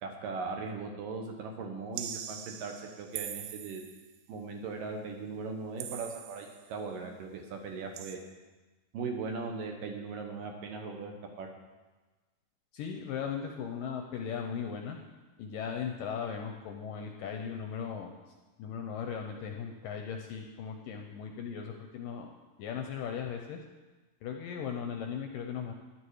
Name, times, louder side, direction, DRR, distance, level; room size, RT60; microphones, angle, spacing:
voice 1, 0.0-3.9 4.3-8.2 8.9-11.5, right 4 dB, 70° right, 2 dB, 2.4 m, -39 dB
sound 1, 2.0-4.1 5.8-6.7 8.0-8.2, right 10 dB, 90° right, 2.9 m, -42 dB
voice 2, 12.7-15.0 15.4-18.1 18.6-22.3 22.6-23.6 24.2-25.8, left 7 dB, 80° left, 3 dB, 2.1 m, -37 dB
13.5 x 10.5 x 4.8 m, 1.2 s
omnidirectional pair, 4.7 m